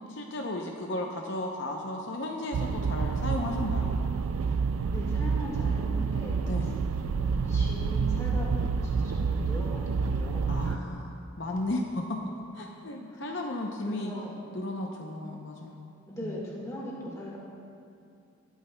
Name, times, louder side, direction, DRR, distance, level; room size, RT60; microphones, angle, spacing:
voice 1, 0.0-4.0 6.5-6.8 10.5-12.2 12.5-14.1 14.5-15.9 16.2-16.4, left 1 dB, 55° left, 1 dB, 0.7 m, -34 dB
sound 1, 2.5-10.8, right 5 dB, 75° right, 0.3 m, -28 dB
voice 2, 4.9-6.4 7.1-10.9 13.1-13.4 13.8-14.3 16.1-17.4, equal, 15° left, -4 dB, 1.6 m, -39 dB
18.5 x 9.1 x 2.2 m, 2.5 s
head